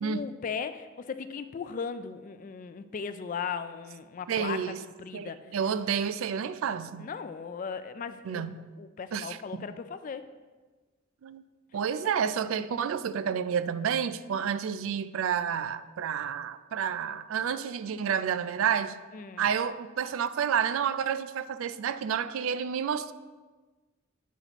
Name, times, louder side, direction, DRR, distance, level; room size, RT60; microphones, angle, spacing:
voice 1, 0.0-5.6 7.0-8.5 8.8-10.3 19.1-19.5, left 6 dB, 40° left, 0.3 m, -37 dB
voice 2, 4.3-4.8 5.1-7.1 8.2-8.7 9.1-9.6 11.2-11.4 11.7-19.0 19.4-23.1, right 7 dB, 75° right, 0.3 m, -30 dB
8.2 x 3.0 x 5.7 m
head